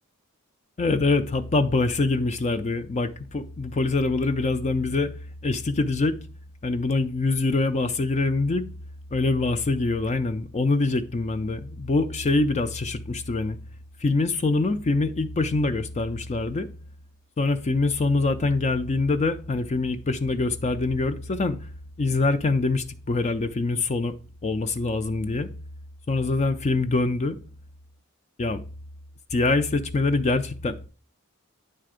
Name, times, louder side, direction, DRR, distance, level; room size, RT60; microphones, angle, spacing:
voice 1, 0.8-5.1 5.4-6.2 6.6-8.7 9.1-13.6 14.0-16.7 17.4-21.6 22.0-24.1 24.4-25.5 26.1-27.4 28.4-28.6 29.3-30.9, left 3 dB, 30° left, 0.4 m, -24 dB
9.6 x 3.3 x 4.9 m
head